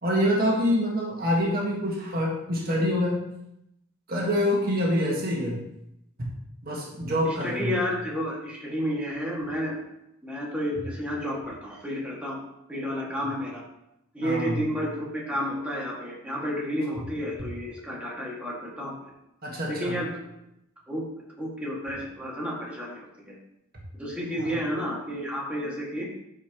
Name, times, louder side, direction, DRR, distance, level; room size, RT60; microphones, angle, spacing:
voice 1, 0.0-3.2 4.1-5.6 6.6-7.7 14.2-14.6 19.4-19.9 24.4-24.6, equal, 45° right, -3 dB, 1.6 m, -26 dB
voice 2, 7.2-9.8 10.2-12.4 12.7-13.6 14.1-19.1 19.7-20.1 20.9-21.0 21.4-23.4 24.0-26.1, equal, 5° right, -5 dB, 1.9 m, -31 dB
12.5 x 5.1 x 3.0 m, 0.83 s
head